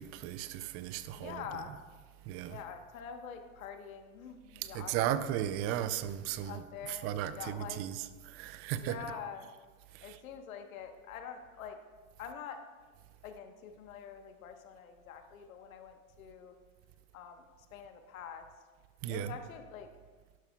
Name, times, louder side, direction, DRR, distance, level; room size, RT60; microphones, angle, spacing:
voice 1, 0.0-1.6 2.3-2.6 4.7-6.6 6.9-9.0 10.1-10.2 19.0-19.4, right 11 dB, 35° right, 0.5 m, -35 dB
voice 2, 1.2-1.7 2.5-4.9 6.4-7.8 8.7-9.5 10.0-11.8 12.2-12.6 13.2-16.5 17.1-17.4 17.7-18.5 19.1-19.9, left 7 dB, 75° left, 1.2 m, -45 dB
12.0 x 11.5 x 2.3 m
hypercardioid pair, 115°, 41 cm